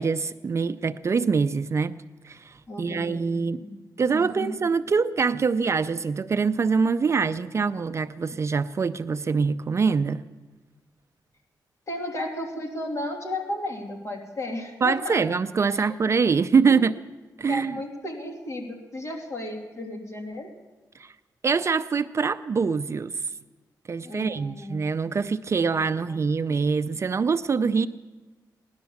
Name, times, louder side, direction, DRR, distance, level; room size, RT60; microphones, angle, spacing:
voice 1, 0.0-1.9 2.2-3.6 4.0-10.2 14.8-16.9 17.4-17.8 21.0-21.1 21.4-23.3 23.9-27.9, right 5 dB, 40° right, 11 dB, 0.4 m, -24 dB
voice 2, 2.7-3.8 4.1-4.5 11.9-15.2 15.7-15.8 16.7-16.8 17.5-20.5 24.0-24.8 25.5-25.8, left 1 dB, 45° left, 1 dB, 2.9 m, -34 dB
17.5 x 11.5 x 7.1 m, 1.2 s
wide cardioid pair, 105°, 7 cm